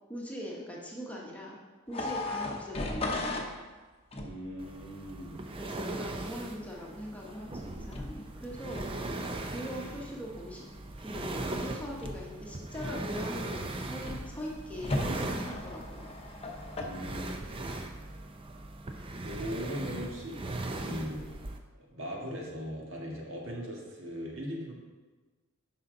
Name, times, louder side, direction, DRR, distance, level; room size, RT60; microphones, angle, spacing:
voice 1, 0.1-1.6 1.9-3.3 5.6-10.6 11.0-16.0, equal, 5° left, -3 dB, 1.1 m, -41 dB
sound 1, 1.9-3.5 4.1-4.5 7.9-8.3 8.7-9.0 11.1-11.5 12.0-12.4 12.8-13.3 14.0-14.4 14.8-16.8, left 2 dB, 30° left, 0.8 m, -36 dB
voice 2, 4.2-5.4 16.8-17.7 19.2-20.4 20.7-21.2 21.8-24.7, equal, 60° right, -1 dB, 1.7 m, -39 dB
sound 2, 4.6-21.6, right 2 dB, 25° right, 0.5 m, -39 dB
9.7 x 5.9 x 3.9 m, 1.3 s
head